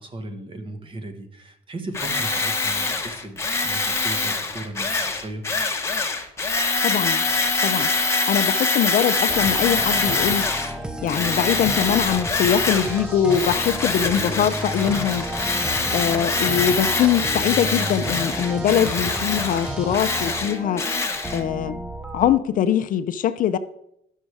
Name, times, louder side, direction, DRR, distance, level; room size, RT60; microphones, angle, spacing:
voice 1, 0.0-5.4, right 2 dB, 30° right, 1.2 m, -36 dB
Tools, 1.9-10.7 11.1-13.0 13.3-21.4, left 3 dB, 15° left, 1.0 m, -24 dB
voice 2, 6.8-7.2 7.6-7.9 8.3-10.5 11.0-15.3 15.9-20.9 21.3-21.8 22.1-23.6, left 9 dB, 55° left, 0.5 m, -22 dB
sound 1, 9.3-22.4, right 1 dB, 5° right, 0.5 m, -31 dB
sound 2, 12.5-20.3, right 2 dB, 75° right, 3.4 m, -44 dB
10.0 x 6.3 x 4.8 m
cardioid pair, 110°, 17 cm